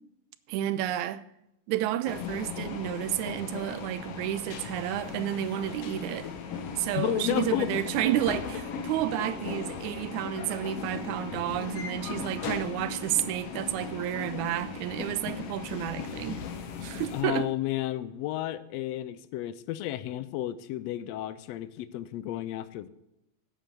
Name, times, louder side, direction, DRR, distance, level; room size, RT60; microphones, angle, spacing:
voice 1, 0.5-1.2 1.7-6.3 6.7-16.4 16.8-17.5, right 12 dB, 80° right, 1.9 m, -31 dB
sound 1, 2.1-17.2, left 6 dB, 60° left, 1.8 m, -37 dB
voice 2, 6.9-7.7 17.1-22.9, left 14 dB, 75° left, 1.6 m, -32 dB
8.3 x 8.1 x 7.9 m
omnidirectional pair, 3.4 m